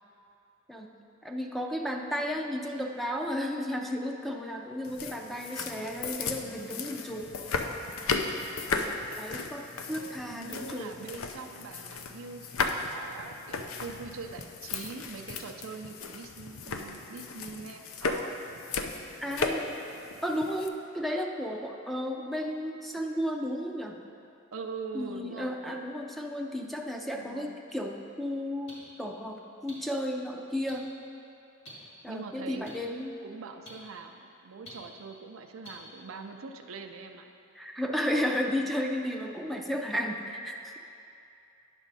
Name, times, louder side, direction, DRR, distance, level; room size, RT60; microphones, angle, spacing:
voice 1, 1.2-7.3 8.8-10.9 19.2-19.7 20.2-24.0 24.9-30.9 32.0-33.2 37.6-40.8, equal, ahead, 1 dB, 0.4 m, -33 dB
Wind instrument woodwind instrument, 4.7-8.1 8.5-11.6 11.9-12.1, right 1 dB, 35° left, 0.9 m, -55 dB
sound 1, 4.8-20.7, left 4 dB, 85° left, 0.5 m, -35 dB
voice 2, 10.2-18.4 24.5-25.8 27.1-27.6 32.1-32.6 33.2-37.3, right 4 dB, 70° right, 5 dB, 0.5 m, -43 dB
sound 2, 27.7-27.8 28.7-28.8 29.7-29.8 30.7-30.8 31.7-31.8 32.7-32.8 33.7-33.8 34.6-34.7 35.6-35.7, equal, 60° left, 2.0 m, -46 dB
9.9 x 6.2 x 4.1 m, 2.6 s
head